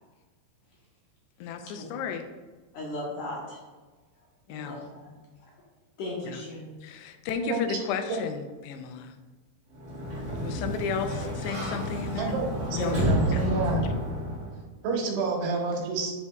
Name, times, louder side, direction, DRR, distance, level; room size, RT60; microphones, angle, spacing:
voice 1, 1.4-2.2 4.5-4.8 6.3-6.4 6.8-9.2 10.4-12.4 12.7-13.5, left 6 dB, 85° left, 6 dB, 2.7 m, -33 dB
voice 2, 2.7-3.6 4.5-5.1 5.4-5.5 6.0-6.7, left 1 dB, 65° left, -4 dB, 2.3 m, -37 dB
voice 3, 7.4-7.8 8.1-8.2 12.2-13.8 14.8-16.1, right 3 dB, 75° right, 0 dB, 3.1 m, -29 dB
Sliding door, 9.7-14.6, equal, 45° right, 1.5 m, -30 dB
8.1 x 7.0 x 2.3 m, 1.3 s
omnidirectional pair, 4.8 m